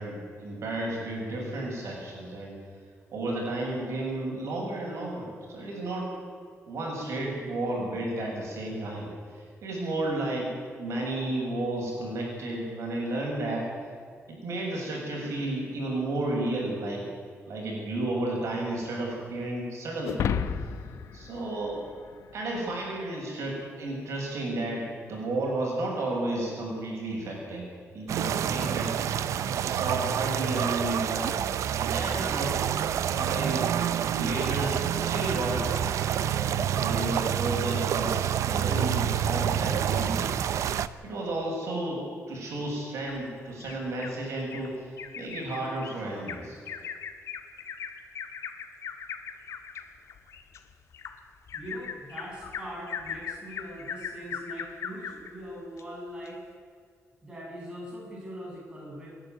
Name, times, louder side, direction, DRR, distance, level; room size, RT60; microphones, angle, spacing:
voice 1, 0.0-2.6 3.1-6.1 6.7-13.7 14.3-17.0 17.5-20.2 21.1-21.8 22.3-27.7 27.9-29.1 29.6-31.3 31.8-36.0 36.3-40.3 41.0-46.6, right 2 dB, 70° right, -2 dB, 7.0 m, -32 dB
sound 1, 20.0-22.6, left 7 dB, 85° left, 1.1 m, -32 dB
sound 2, 28.1-40.9, right 9 dB, 85° right, 0.7 m, -28 dB
Bird vocalization bird call bird song, 43.1-44.2 44.5-44.7 45.0-55.3 55.8-55.9 56.3-56.4, left 7 dB, 70° left, 1.8 m, -39 dB
voice 2, 51.5-56.4 57.2-59.1, equal, 15° right, -4 dB, 7.4 m, -41 dB
28.0 x 11.0 x 9.4 m, 2.1 s
wide cardioid pair, 165°, 5 cm